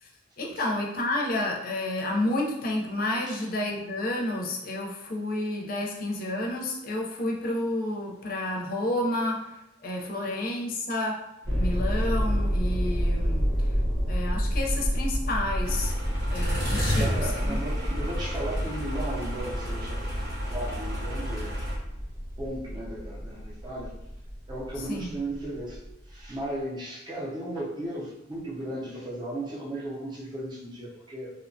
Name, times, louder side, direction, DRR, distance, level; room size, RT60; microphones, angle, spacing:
voice 1, 0.4-9.5 9.8-11.2 11.5-13.7 14.1-15.9 16.3-17.6 24.8-25.2, left 1 dB, 45° left, -1 dB, 0.5 m, -30 dB
sound 1, 11.4-26.5, equal, 80° right, 1.0 m, -29 dB
sound 2, 15.6-21.8, equal, 55° right, 0.8 m, -32 dB
voice 2, 16.9-20.1 20.5-21.6 22.4-23.9 24.5-25.8 26.1-31.3, right 1 dB, 20° right, -6 dB, 0.5 m, -35 dB
2.8 x 2.1 x 2.6 m, 0.91 s
head